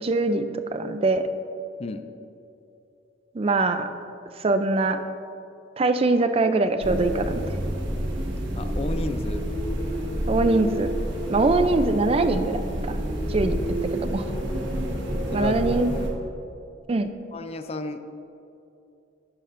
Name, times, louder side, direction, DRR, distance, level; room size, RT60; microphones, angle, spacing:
voice 1, 0.0-1.2 3.3-3.9 4.4-5.0 5.8-7.4 10.3-10.9 11.3-13.0 13.3-14.3 15.3-15.9 16.9-17.1, right 2 dB, 30° right, 9 dB, 0.4 m, -23 dB
sound 1, 6.8-16.1, equal, 85° right, 1.3 m, -28 dB
voice 2, 8.5-9.4 15.3-15.5 17.3-18.0, left 2 dB, 35° left, 9 dB, 0.4 m, -32 dB
12.0 x 9.9 x 2.5 m, 2.7 s
head